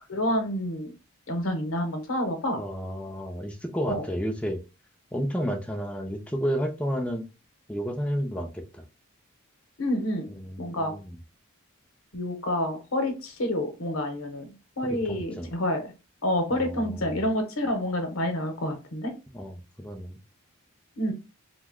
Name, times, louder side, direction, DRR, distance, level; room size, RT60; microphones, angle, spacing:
voice 1, 0.1-0.9 1.3-2.6 3.9-4.0 9.8-10.3 10.6-10.9 12.1-15.9 16.2-19.1 21.0-21.1, left 1 dB, 75° left, 5 dB, 0.8 m, -28 dB
voice 2, 2.5-4.6 5.1-7.3 7.7-8.8 10.3-11.2 14.8-15.5 16.5-17.3 19.3-20.2, equal, 5° left, 4 dB, 0.4 m, -32 dB
2.8 x 2.1 x 3.5 m, 0.29 s
head